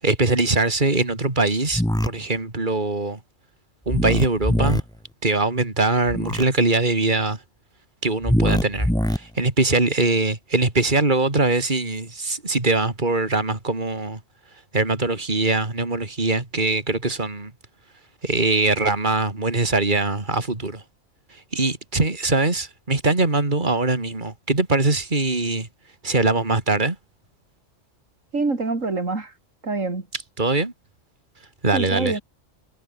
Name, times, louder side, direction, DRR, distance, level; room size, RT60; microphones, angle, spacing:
voice 1, 0.0-3.2 3.9-4.8 5.2-7.4 8.0-14.2 14.7-17.5 18.2-20.8 21.5-25.7 26.0-27.0 30.4-30.7 31.6-32.2, right 3 dB, 40° right, 3.4 m, -22 dB
sound 1, 1.7-2.1 3.9-4.8 6.1-6.4 8.2-9.2, equal, 5° left, 1.4 m, -22 dB
voice 2, 28.3-29.3 29.6-30.1 31.7-32.2, right 3 dB, 85° right, 3.7 m, -25 dB
omnidirectional pair, 1.3 m